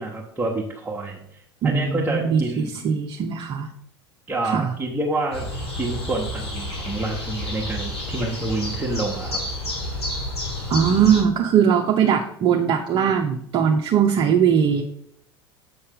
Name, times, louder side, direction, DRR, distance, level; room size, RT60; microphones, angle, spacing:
voice 1, 0.0-2.8 4.3-5.5 5.8-9.4, right 2 dB, 15° right, -4 dB, 1.3 m, -28 dB
voice 2, 1.6-3.7 4.4-4.7 10.7-14.8, right 7 dB, 35° right, 3 dB, 0.7 m, -20 dB
sound 1, 5.3-11.2, left 1 dB, 85° left, 2.6 m, -30 dB
7.6 x 5.4 x 3.8 m, 0.73 s
figure-of-eight pair, 75°, 13 cm